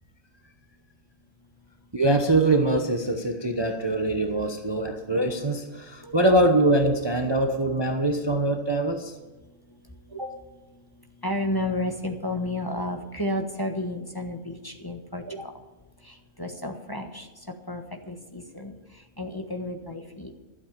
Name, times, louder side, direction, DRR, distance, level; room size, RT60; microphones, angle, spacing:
voice 1, 1.9-9.1 10.1-10.4 15.3-15.4, right 2 dB, 20° right, 4 dB, 0.9 m, -23 dB
voice 2, 11.2-15.2 16.0-17.3 17.7-17.8 18.1-18.7 19.2-20.3, left 1 dB, 15° left, 3 dB, 1.2 m, -31 dB
12.5 x 8.0 x 8.7 m, 1.2 s
omnidirectional pair, 1.4 m